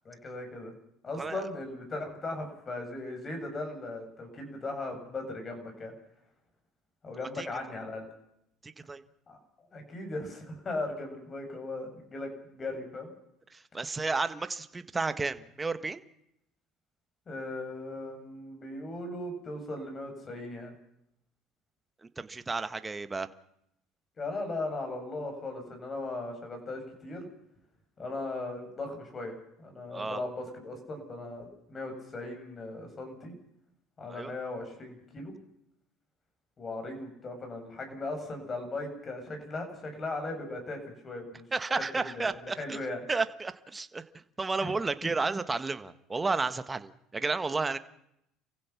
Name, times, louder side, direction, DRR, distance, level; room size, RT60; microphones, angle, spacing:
voice 1, 0.0-0.7 1.0-5.9 7.0-8.1 9.3-9.4 9.7-13.1 17.3-20.7 24.2-27.3 28.0-29.3 29.6-33.3 34.0-35.3 36.6-41.5 41.9-43.0 44.6-44.7 45.0-45.1, left 2 dB, 30° left, 4 dB, 7.9 m, -38 dB
voice 2, 8.6-9.0 13.5-16.0 22.0-23.3 29.9-30.2 34.1-34.3 41.5-42.8 43.1-44.0 44.4-47.8, right 3 dB, 20° right, 11 dB, 1.6 m, -32 dB
29.0 x 16.0 x 6.1 m, 0.77 s
supercardioid pair, 85°, 0 cm